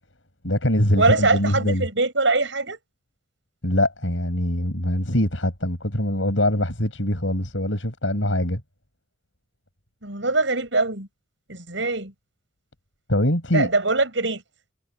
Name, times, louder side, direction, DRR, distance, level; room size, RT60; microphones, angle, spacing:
voice 1, 0.4-1.9 3.6-8.6 13.1-13.7, left 1 dB, 75° left, 7.7 m, -23 dB
voice 2, 1.0-2.8 10.0-11.1 11.5-12.1 13.5-14.4, right 3 dB, 70° right, 7.3 m, -22 dB
head